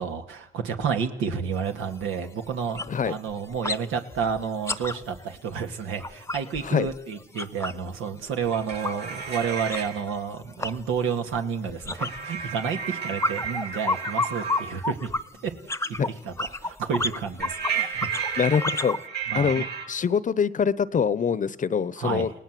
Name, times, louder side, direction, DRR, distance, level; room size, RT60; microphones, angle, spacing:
voice 1, 0.0-15.1 15.4-15.5 16.1-16.3 16.6-18.5 19.3-19.6 22.0-22.3, right 6 dB, 90° right, 5 dB, 2.3 m, -30 dB
sound 1, 1.5-1.6 2.0-2.2 2.5-3.8 4.1-7.9 8.2-19.0, left 2 dB, 15° left, 0.9 m, -32 dB
sound 2, 8.4-10.0 12.0-14.8 17.4-19.8, right 7 dB, 60° right, 7.6 m, -32 dB
voice 2, 18.4-19.0 19.3-22.3, left 6 dB, 40° left, 18 dB, 0.9 m, -24 dB
29.0 x 18.5 x 7.7 m, 0.77 s
cardioid pair, 90°, 20 cm